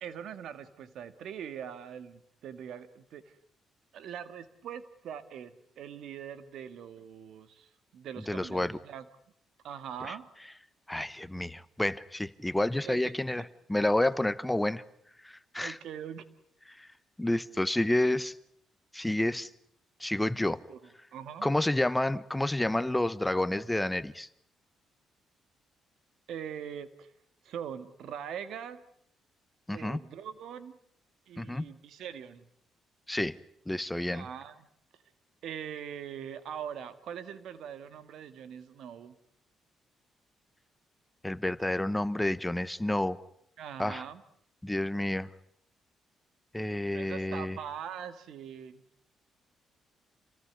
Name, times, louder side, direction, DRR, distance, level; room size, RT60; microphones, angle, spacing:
voice 1, 0.0-3.4 3.9-9.1 9.6-10.3 12.8-13.4 15.6-16.3 20.4-20.8 21.1-21.5 26.3-27.1 27.4-28.8 29.7-30.8 31.3-32.4 34.1-34.7 35.4-39.2 43.6-44.2 46.9-48.8, right 8 dB, 75° right, 12 dB, 1.7 m, -42 dB
voice 2, 8.3-8.8 10.1-10.2 10.9-14.8 15.2-15.8 16.8-16.9 17.2-18.3 18.9-19.5 20.0-20.6 21.4-24.3 29.7-30.0 31.4-31.7 33.1-33.4 33.7-34.2 41.2-43.2 43.8-44.0 44.6-45.3 46.5-47.6, left 1 dB, 10° left, 15 dB, 1.0 m, -29 dB
27.5 x 18.5 x 9.6 m, 0.70 s
cardioid pair, 90°, 0 cm